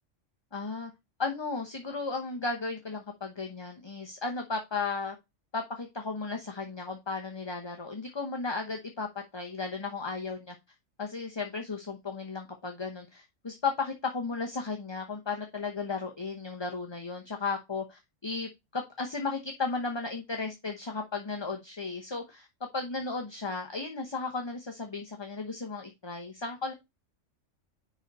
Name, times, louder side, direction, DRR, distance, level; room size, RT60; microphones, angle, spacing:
voice 1, 0.5-0.9 1.2-5.1 5.5-9.1 9.3-10.5 11.0-22.5 22.7-26.7, left 4 dB, 25° left, 3 dB, 0.9 m, -35 dB
10.0 x 4.0 x 4.1 m, 0.22 s
omnidirectional pair, 1.3 m